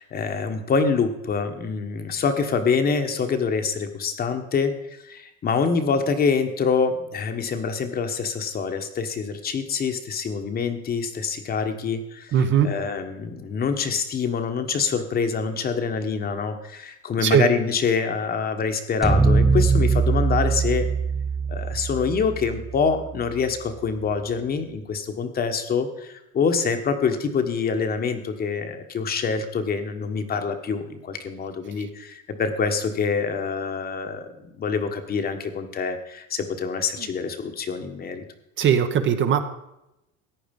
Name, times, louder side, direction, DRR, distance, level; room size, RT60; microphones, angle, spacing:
voice 1, 0.0-12.3 12.6-20.9 21.5-38.2, left 5 dB, 30° left, 7 dB, 1.3 m, -26 dB
voice 2, 12.3-12.8 17.2-17.5 37.0-37.1 38.6-39.4, right 8 dB, 40° right, 8 dB, 1.1 m, -20 dB
sound 1, 19.0-23.4, right 4 dB, ahead, 0.7 m, -22 dB
14.5 x 9.5 x 5.3 m, 0.87 s
cardioid pair, 145°, 31 cm